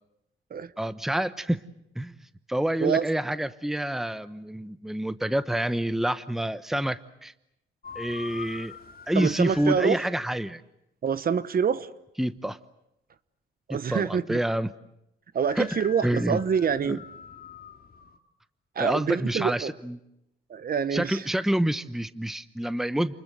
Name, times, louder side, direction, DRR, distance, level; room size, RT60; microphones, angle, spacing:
voice 1, 0.8-1.6 1.9-2.1 2.5-7.3 7.9-8.7 9.1-10.6 12.2-12.6 13.7-14.7 15.6-15.7 16.0-16.4 16.8-17.0 18.8-20.0 20.9-23.1, right 1 dB, ahead, 13 dB, 1.0 m, -27 dB
sound 1, 7.8-9.8 15.5-18.2, left 7 dB, 50° left, 2.4 m, -44 dB
voice 2, 9.1-10.0 11.0-11.9 13.7-14.4 15.3-17.0 18.7-19.7 20.5-21.2, right 7 dB, 50° right, 14 dB, 1.1 m, -26 dB
29.0 x 21.0 x 8.0 m, 0.85 s
cardioid pair, 90°, 20 cm